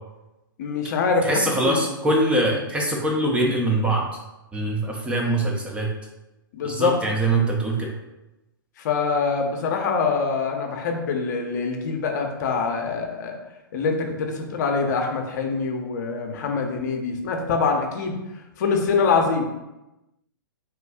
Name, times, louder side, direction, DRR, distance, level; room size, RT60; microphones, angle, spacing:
voice 1, 0.6-1.8 2.5-2.6 6.5-6.9 8.8-13.4 13.7-18.2 18.6-19.5, left 4 dB, 50° left, 3 dB, 0.6 m, -24 dB
voice 2, 1.2-4.0 4.5-5.9 6.6-7.9, right 1 dB, 10° right, -1 dB, 0.4 m, -23 dB
3.0 x 2.3 x 3.5 m, 0.98 s
hypercardioid pair, 120°, 12 cm